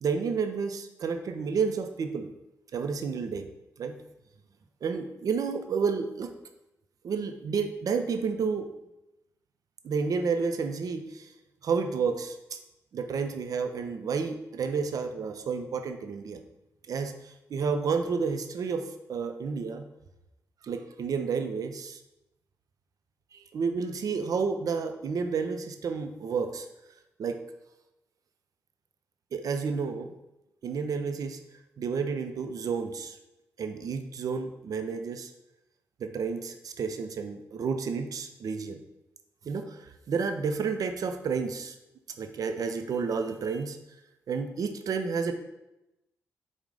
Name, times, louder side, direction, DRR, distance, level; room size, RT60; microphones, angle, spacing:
voice 1, 0.0-2.3 2.7-3.5 3.8-4.0 4.8-6.3 7.0-8.7 9.8-11.3 11.6-12.4 12.9-16.4 16.9-19.8 20.6-22.0 23.3-26.7 27.2-27.4 29.3-30.1 30.6-31.4 31.8-33.2 33.6-35.3 36.0-38.8 39.4-41.8 42.2-43.8 44.3-45.3, right 5 dB, 65° right, 8 dB, 0.4 m, -30 dB
4.6 x 2.1 x 3.6 m, 0.94 s
supercardioid pair, 50°, 7 cm